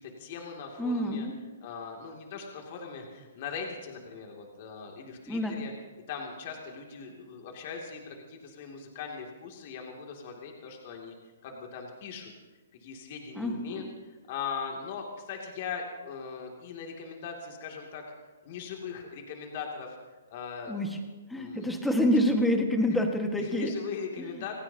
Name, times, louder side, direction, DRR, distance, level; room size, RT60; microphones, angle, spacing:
voice 1, 0.0-1.3 1.6-5.7 6.1-11.1 11.4-12.3 12.8-18.0 18.4-20.0 20.3-20.8 21.3-21.7 22.0-22.1 23.4-24.5, left 6 dB, 40° left, 1 dB, 2.6 m, -40 dB
voice 2, 0.8-1.3 5.3-5.6 13.3-13.9 20.7-21.0 21.3-23.7 24.2-24.4, left 1 dB, 5° left, 3 dB, 1.7 m, -27 dB
27.0 x 16.5 x 2.9 m, 1.2 s
hypercardioid pair, 160°, 0 cm